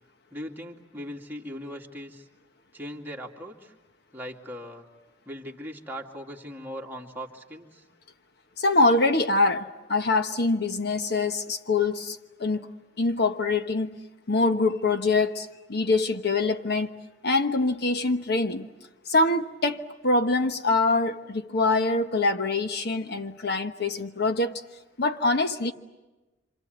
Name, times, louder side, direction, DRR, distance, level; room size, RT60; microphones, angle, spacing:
voice 1, 0.3-2.3 2.7-3.7 4.1-4.9 5.3-7.8, equal, 10° right, 2.4 m, -39 dB
voice 2, 8.6-12.7 13.0-13.9 14.3-16.9 17.2-18.7 19.1-24.6 25.0-25.7, left 3 dB, 60° left, 1.2 m, -24 dB
27.5 x 27.0 x 7.9 m
head